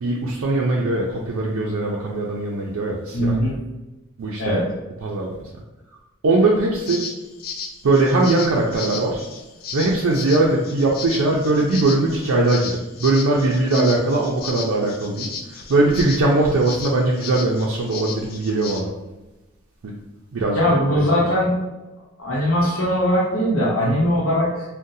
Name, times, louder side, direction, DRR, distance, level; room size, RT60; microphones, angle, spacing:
voice 1, 0.0-3.3 4.2-4.6 5.0-5.3 6.2-7.0 7.8-9.2 9.7-18.9 19.8-19.9 20.3-21.2, right 2 dB, 80° right, -3 dB, 0.4 m, -20 dB
voice 2, 3.1-3.6 4.4-4.7 20.5-21.6 22.2-24.6, equal, 75° left, -6 dB, 0.8 m, -20 dB
sound 1, 6.9-18.8, left 5 dB, 45° left, 0.3 m, -35 dB
3.9 x 2.1 x 2.6 m, 1.1 s
head